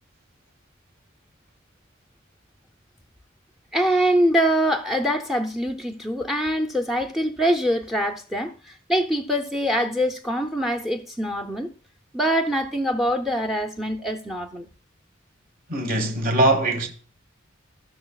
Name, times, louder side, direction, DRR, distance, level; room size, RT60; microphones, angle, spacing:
voice 1, 3.7-11.7 12.1-14.7, equal, ahead, 0.5 m, -24 dB
voice 2, 15.7-16.9, right 1 dB, 45° right, 1.4 m, -21 dB
15.5 x 6.3 x 2.3 m
head